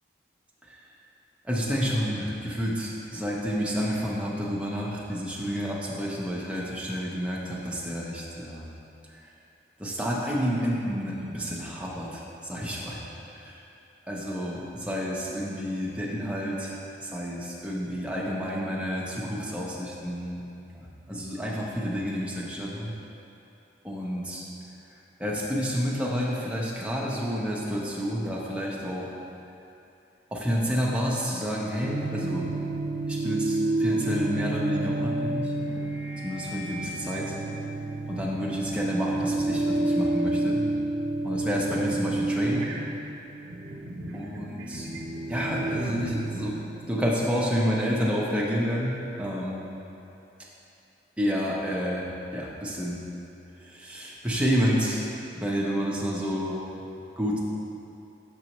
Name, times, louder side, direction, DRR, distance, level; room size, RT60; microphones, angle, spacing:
voice 1, 1.4-8.7 9.8-13.6 14.1-20.4 20.7-22.9 23.8-24.4 25.2-29.1 30.3-32.5 33.1-35.5 36.2-37.4 38.1-40.6 41.2-42.7 44.1-44.9 45.3-46.6 46.8-49.6 51.2-52.0 52.3-53.0 53.6-55.1 55.3-56.6 57.2-57.4, equal, 5° right, -5 dB, 0.7 m, -29 dB
sound 1, 31.8-46.9, right 2 dB, 90° right, 0.7 m, -30 dB
6.8 x 6.1 x 3.0 m, 2.8 s
head